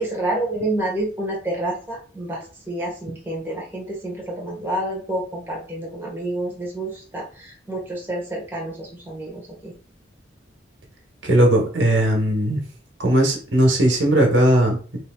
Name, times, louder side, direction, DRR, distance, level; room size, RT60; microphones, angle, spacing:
voice 1, 0.0-9.7, right 1 dB, 10° right, -3 dB, 1.1 m, -28 dB
voice 2, 11.2-12.6 13.0-14.8, right 1 dB, 85° right, 1 dB, 1.2 m, -18 dB
3.3 x 2.8 x 3.6 m, 0.39 s
head